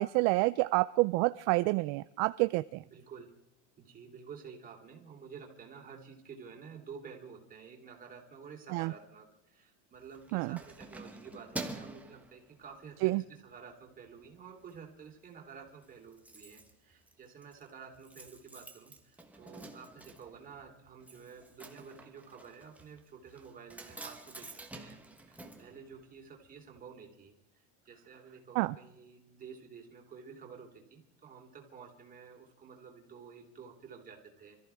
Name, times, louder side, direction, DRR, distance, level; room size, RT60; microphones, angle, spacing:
voice 1, 0.0-2.8 8.7-8.9 10.3-10.6 13.0-13.2 28.6-28.7, right 22 dB, 55° right, 14 dB, 0.5 m, -28 dB
voice 2, 2.8-3.3 3.8-25.0 25.3-34.6, right 6 dB, 25° right, 1 dB, 3.4 m, -51 dB
Keys jangling, 9.9-13.0 13.5-13.7 14.1-14.8 15.0-15.1 15.4-15.5 15.7-26.5 26.8-26.9, right 2 dB, 5° right, 1.2 m, -48 dB
26.5 x 14.0 x 3.5 m, 0.80 s
cardioid pair, 155°, 36 cm